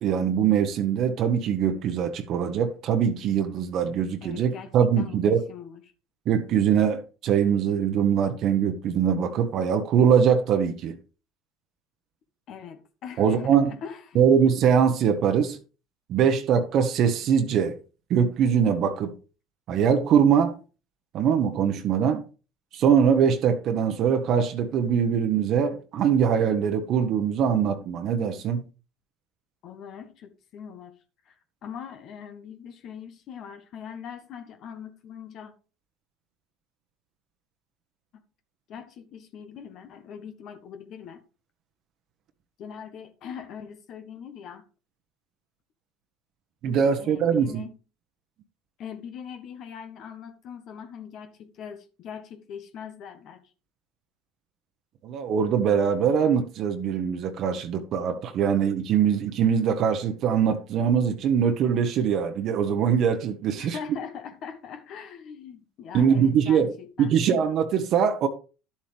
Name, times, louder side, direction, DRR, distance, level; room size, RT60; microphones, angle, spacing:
voice 1, 0.0-5.4 6.3-11.0 13.2-13.7 14.1-15.6 16.1-17.8 18.1-19.1 19.7-20.6 21.1-22.2 22.7-28.7 46.6-47.6 55.0-63.8 65.9-66.7 67.0-68.3, right 7 dB, 55° right, 1.1 m, -22 dB
voice 2, 4.2-5.2 5.5-5.8 12.5-14.2 29.6-30.9 31.2-35.5 38.1-38.2 38.7-41.2 42.6-44.7 46.6-47.8 48.8-53.4 63.6-67.2, left 7 dB, 55° left, 1.2 m, -41 dB
11.0 x 7.5 x 3.4 m
hypercardioid pair, 75°, 0 cm